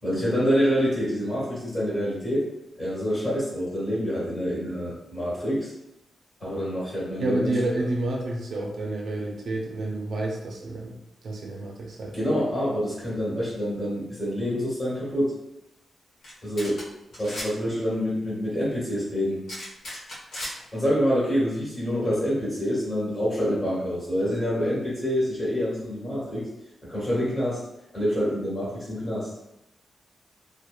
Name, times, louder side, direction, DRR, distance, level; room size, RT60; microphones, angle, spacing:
voice 1, 0.0-2.5 2.8-5.7 6.4-7.5 12.1-15.3 16.4-16.8 17.2-19.4 20.7-26.4 26.9-27.6 27.9-29.3, equal, 20° left, -8 dB, 1.3 m, -26 dB
voice 2, 7.2-10.9 11.2-12.1, right 2 dB, 60° right, -1 dB, 0.4 m, -29 dB
sound 1, 16.2-16.3 16.6-16.8 17.1-17.5 19.5-20.5, equal, 80° left, 1.1 m, -35 dB
2.9 x 2.1 x 2.2 m, 0.86 s
wide cardioid pair, 155°, 0 cm